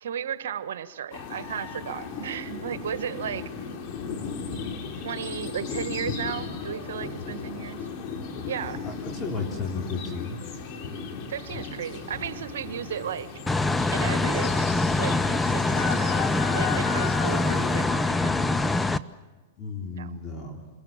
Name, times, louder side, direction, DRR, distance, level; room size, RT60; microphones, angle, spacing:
voice 1, 0.0-3.4 5.0-7.9 8.4-8.8 11.3-13.3 13.9-18.3 19.9-20.1, right 9 dB, 70° right, 11 dB, 1.4 m, -35 dB
sound 1, 1.1-17.8, left 6 dB, 45° left, 3.4 m, -36 dB
voice 2, 8.8-10.4 19.6-20.6, left 4 dB, 25° left, -1 dB, 3.9 m, -33 dB
sound 2, 13.5-19.0, left 3 dB, 10° left, 0.7 m, -24 dB
28.0 x 21.5 x 7.5 m, 1.2 s
hypercardioid pair, 105°, 0 cm